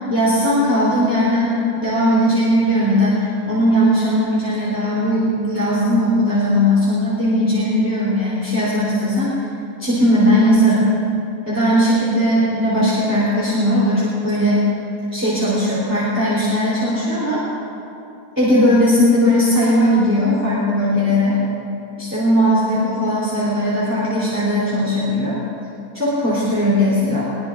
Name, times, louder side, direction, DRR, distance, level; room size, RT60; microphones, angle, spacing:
voice 1, 0.1-9.5 9.8-10.9 11.5-14.7 15.1-17.4 18.4-21.4 22.0-25.4 25.9-27.2, equal, 10° right, -9 dB, 3.3 m, -18 dB
23.0 x 20.5 x 2.5 m, 2.8 s
omnidirectional pair, 1.7 m